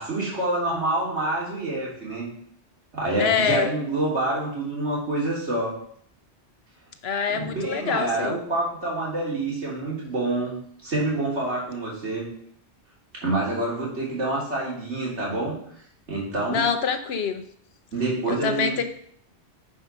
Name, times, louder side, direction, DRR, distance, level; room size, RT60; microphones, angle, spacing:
voice 1, 0.0-2.3 2.9-5.7 7.3-10.5 10.8-12.3 13.1-15.6 16.1-16.6 17.9-18.8, right 2 dB, 90° right, -5 dB, 3.3 m, -27 dB
voice 2, 3.2-3.7 7.0-8.4 16.5-17.4 18.3-18.8, left 6 dB, 70° left, 9 dB, 1.1 m, -25 dB
9.7 x 5.1 x 5.4 m, 0.64 s
omnidirectional pair, 1.1 m